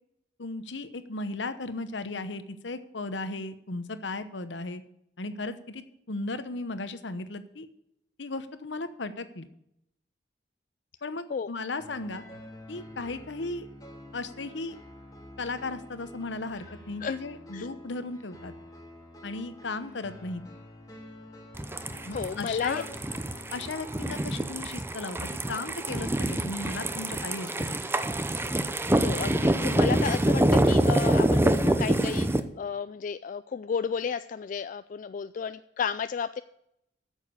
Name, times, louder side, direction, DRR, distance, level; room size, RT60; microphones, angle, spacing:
voice 1, 0.4-4.8 5.2-7.7 8.2-9.5 11.0-12.2 12.7-13.7 14.1-14.8 15.4-18.5 19.2-20.4 22.0-22.9 23.5-27.8, left 3 dB, 70° left, 11 dB, 1.0 m, -36 dB
sound 1, 11.8-24.1, left 1 dB, 20° left, 2.1 m, -47 dB
sound 2, 21.6-32.4, right 1 dB, 15° right, 0.6 m, -26 dB
voice 2, 22.1-22.8 28.9-36.4, left 6 dB, 45° left, 12 dB, 0.3 m, -32 dB
9.1 x 7.3 x 8.5 m, 0.80 s
head